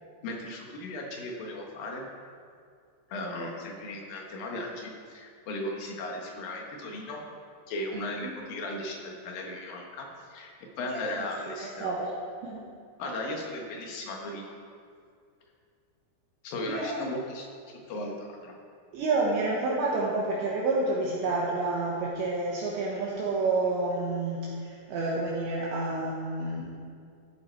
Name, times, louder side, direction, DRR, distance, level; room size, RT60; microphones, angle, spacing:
voice 1, 0.2-2.1 3.1-7.2 7.7-11.9 13.0-14.5 16.4-18.5, left 1 dB, 70° left, 0 dB, 2.2 m, -36 dB
voice 2, 7.9-8.3 10.9-11.3 11.6-12.1 12.4-12.7 16.7-17.0 18.9-26.7, right 3 dB, 70° right, -4 dB, 3.1 m, -29 dB
15.0 x 11.0 x 4.5 m, 2.3 s
omnidirectional pair, 5.9 m